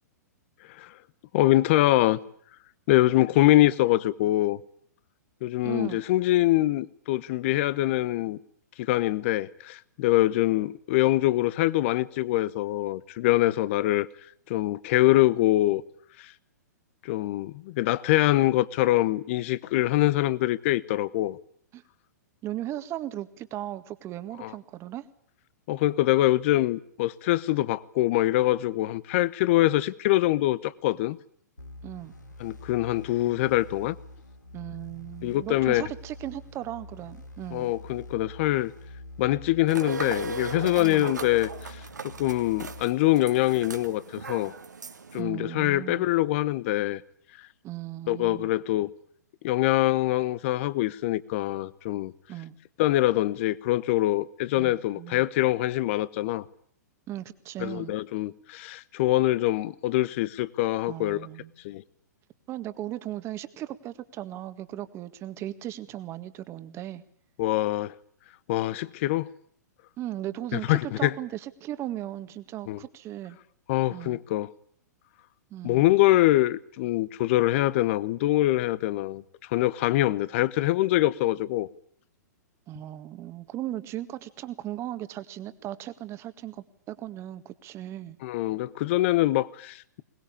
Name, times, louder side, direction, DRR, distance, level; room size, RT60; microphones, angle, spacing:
voice 1, 1.3-2.2 2.9-4.6 5.4-8.4 8.8-14.1 14.5-15.8 16.2-16.3 17.0-21.4 24.4-24.5 25.7-31.2 32.4-34.0 35.2-35.8 37.5-38.7 39.2-44.5 45.1-47.0 48.1-48.9 49.4-52.1 52.8-56.4 57.6-61.3 61.6-61.8 67.4-67.9 68.5-69.3 70.5-71.1 72.7-72.8 73.7-74.5 75.6-79.2 79.5-81.7 88.2-90.0, left 16 dB, 45° left, 1.0 m, -24 dB
voice 2, 5.6-6.0 21.7-21.8 22.4-25.1 31.8-32.1 34.5-37.7 40.8-41.1 45.1-46.1 47.6-48.5 52.3-52.5 54.6-55.2 57.1-57.9 60.9-61.5 62.5-67.0 70.0-73.4 73.9-74.2 75.5-75.8 82.7-88.2, right 13 dB, 30° right, 1.8 m, -37 dB
sound 1, 31.6-42.8, left 1 dB, 90° left, 4.4 m, -46 dB
sound 2, 39.7-45.2, right 3 dB, 80° right, 2.1 m, -37 dB
22.0 x 20.0 x 8.6 m
figure-of-eight pair, 110°, 9 cm